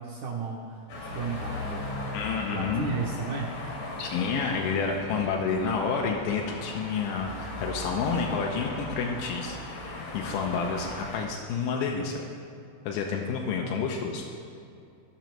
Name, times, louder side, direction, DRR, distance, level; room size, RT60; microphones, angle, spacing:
voice 1, 0.0-2.2 2.5-3.5 13.6-13.8, right 5 dB, 75° right, -2 dB, 1.7 m, -35 dB
sound 1, 0.9-11.3, left 2 dB, 60° left, 1.6 m, -38 dB
voice 2, 2.1-3.0 4.0-12.2 12.9-14.2, left 5 dB, 80° left, 1 dB, 1.9 m, -29 dB
16.0 x 5.9 x 3.0 m, 2.5 s
omnidirectional pair, 4.2 m